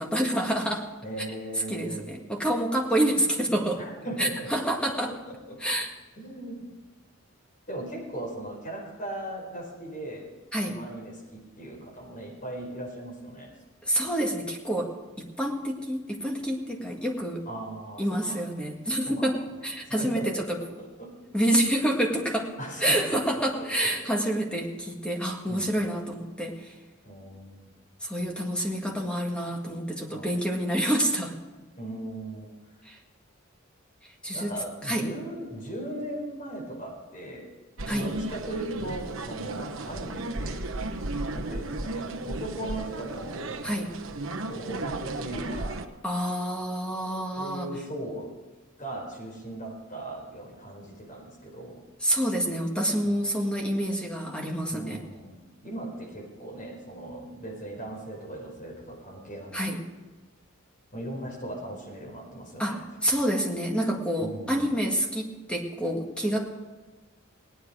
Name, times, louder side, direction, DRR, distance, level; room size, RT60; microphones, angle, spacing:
voice 1, 0.0-0.9 1.7-3.8 4.2-5.1 5.6-5.9 10.5-10.8 13.9-14.9 15.2-17.5 18.0-20.6 21.3-22.5 22.8-26.7 28.0-31.3 32.9-33.0 34.2-34.5 34.8-35.1 37.9-38.1 43.6-43.9 46.0-47.7 52.0-55.0 59.5-59.8 62.6-66.5, right 1 dB, 5° left, 0 dB, 1.9 m, -28 dB
voice 2, 1.0-2.2 3.8-4.5 4.8-5.8 6.2-6.7 7.7-10.3 10.7-13.5 17.5-18.4 19.0-19.4 19.9-21.2 22.6-23.9 25.5-25.9 27.0-27.7 30.1-30.3 31.8-32.5 34.3-37.5 37.9-40.7 41.3-43.5 44.3-45.9 47.4-48.3 48.8-51.8 53.0-53.2 54.7-59.8 60.9-62.8 64.2-64.7, right 1 dB, 40° left, -1 dB, 4.7 m, -38 dB
sound 1, 37.8-45.8, right 2 dB, 75° right, 1.0 m, -34 dB
17.5 x 10.0 x 5.0 m, 1.2 s
head